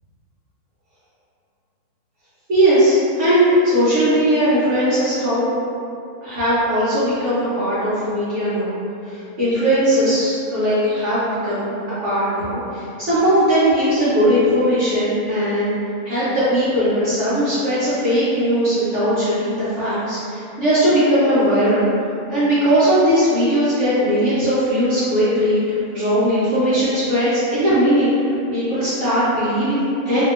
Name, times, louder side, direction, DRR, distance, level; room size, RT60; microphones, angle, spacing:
voice 1, 2.5-5.5 6.2-8.7 9.0-15.7 16.0-21.9 22.3-28.1 28.5-30.2, equal, 60° right, -12 dB, 0.8 m, -19 dB
2.7 x 2.7 x 2.4 m, 2.6 s
omnidirectional pair, 1.9 m